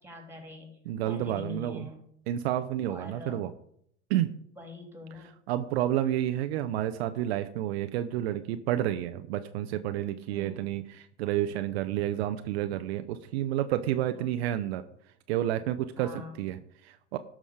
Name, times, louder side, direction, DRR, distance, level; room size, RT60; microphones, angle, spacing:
voice 1, 0.0-0.8 1.0-2.0 2.9-3.4 4.6-5.4 10.3-10.7 14.2-14.4 16.0-16.4, left 2 dB, 5° right, 3 dB, 3.5 m, -44 dB
voice 2, 0.9-1.9 2.3-3.5 4.1-4.3 5.5-14.8 15.3-16.1 16.4-17.2, right 12 dB, 65° right, 10 dB, 0.8 m, -30 dB
12.0 x 6.3 x 5.0 m, 0.68 s
hypercardioid pair, 90°, 34 cm